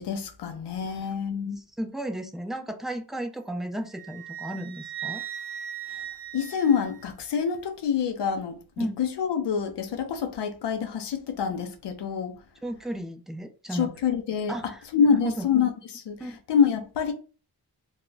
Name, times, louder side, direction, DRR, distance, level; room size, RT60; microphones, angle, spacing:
voice 1, 0.0-1.6 6.3-12.3 13.7-17.1, left 7 dB, 85° left, 0.6 m, -26 dB
voice 2, 1.8-5.2 8.8-9.0 12.6-13.9 14.5-14.8 15.1-15.5 16.2-16.4, right 1 dB, ahead, 0.4 m, -34 dB
Wind instrument woodwind instrument, 3.9-7.4, right 10 dB, 85° right, 0.6 m, -38 dB
2.1 x 2.1 x 3.8 m
cardioid pair, 45°, 41 cm